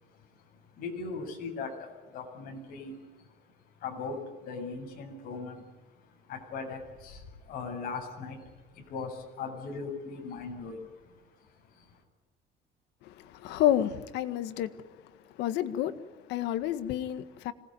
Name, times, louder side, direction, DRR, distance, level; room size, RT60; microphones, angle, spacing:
voice 1, 0.8-3.3 3.8-5.7 6.0-11.9, left 4 dB, 55° left, 7.6 m, -40 dB
voice 2, 13.4-14.7 15.4-15.9 16.3-17.5, left 11 dB, 85° left, 1.8 m, -29 dB
26.5 x 19.5 x 9.5 m
cardioid pair, 170°, 17 cm